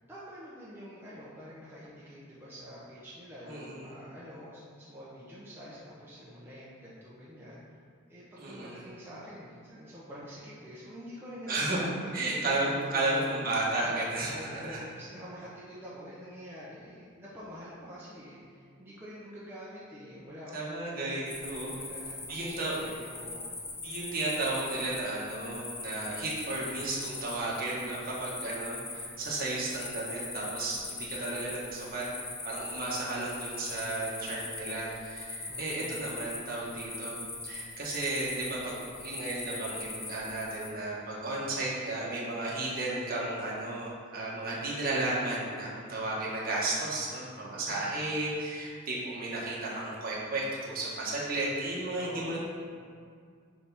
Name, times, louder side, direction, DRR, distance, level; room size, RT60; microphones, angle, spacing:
voice 1, 0.1-4.6 4.9-7.6 8.1-13.2 14.3-23.5 35.5-36.1 47.5-47.9 51.9-52.4, equal, 10° right, -9 dB, 0.8 m, -46 dB
voice 2, 3.4-4.0 8.4-8.8 11.5-11.8 12.1-14.8 20.5-21.8 22.3-22.7 23.8-32.0 32.4-37.2 37.4-52.4, right 2 dB, 45° right, -6 dB, 1.5 m, -33 dB
sound 1, 21.3-40.7, left 3 dB, 15° left, 0.5 m, -41 dB
7.0 x 3.5 x 5.6 m, 2.1 s
head